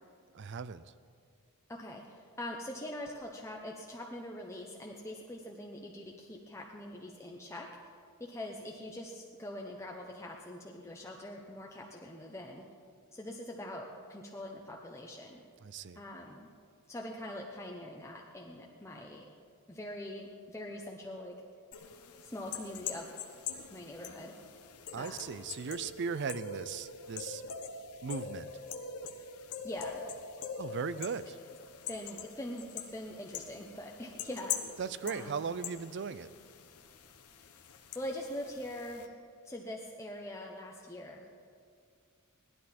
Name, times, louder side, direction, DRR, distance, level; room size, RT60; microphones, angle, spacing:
voice 1, 0.3-0.8 15.6-16.0 24.9-27.4 28.0-28.5 30.6-31.4 34.8-36.3, right 5 dB, 50° right, 15 dB, 0.4 m, -37 dB
voice 2, 1.7-7.7 8.2-12.6 13.1-15.4 15.9-16.5 16.9-19.2 19.7-21.3 22.2-23.1 23.7-24.3 25.0-25.2 29.6-30.0 31.9-34.6 35.0-35.4 37.4-37.5 37.9-39.1 39.4-41.3, left 1 dB, 10° left, -1 dB, 0.7 m, -43 dB
sound 1, 21.7-39.1, left 6 dB, 90° left, 1.0 m, -44 dB
17.5 x 12.0 x 4.2 m, 2.2 s
head